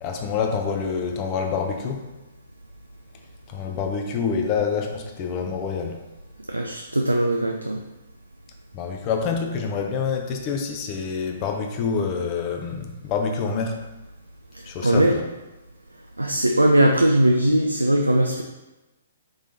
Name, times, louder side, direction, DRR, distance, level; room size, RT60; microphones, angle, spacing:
voice 1, 0.0-2.1 3.5-6.0 8.7-13.8 14.6-15.2, left 5 dB, 30° left, 3 dB, 0.5 m, -27 dB
voice 2, 6.5-7.8 14.8-15.1 16.2-18.4, right 1 dB, 85° right, 3 dB, 0.3 m, -19 dB
3.8 x 3.1 x 3.9 m, 1.1 s
figure-of-eight pair, 120°, 0 cm